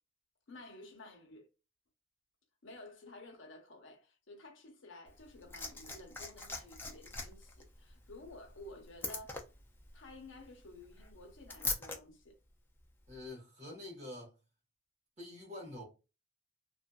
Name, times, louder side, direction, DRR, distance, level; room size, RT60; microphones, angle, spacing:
voice 1, 0.5-1.5 2.6-9.4 9.9-12.4, left 2 dB, 70° left, 0.8 m, -53 dB
Liquid, 5.1-12.0 13.1-13.2, left 3 dB, 10° left, 0.3 m, -43 dB
voice 2, 13.1-14.3 15.2-15.8, left 2 dB, 35° right, 1.2 m, -46 dB
2.5 x 2.5 x 2.3 m
head